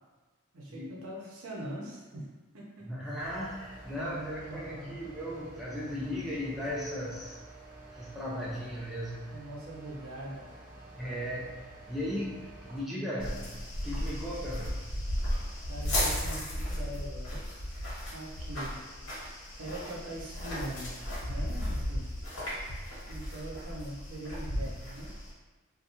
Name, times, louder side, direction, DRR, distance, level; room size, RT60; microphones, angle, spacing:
voice 1, 0.5-2.9 3.9-5.0 9.3-10.5 15.7-17.5 18.1-18.8 19.6-21.0 21.3-22.1 23.1-25.1, right 1 dB, 85° right, -4 dB, 0.7 m, -42 dB
voice 2, 2.8-7.4 7.9-9.4 11.0-14.9, equal, ahead, -7 dB, 0.3 m, -37 dB
sound 1, 3.2-12.8, right 1 dB, 40° right, 0.8 m, -50 dB
sound 2, 13.2-25.3, equal, 70° left, 1.0 m, -35 dB
2.4 x 2.2 x 2.8 m, 1.3 s
head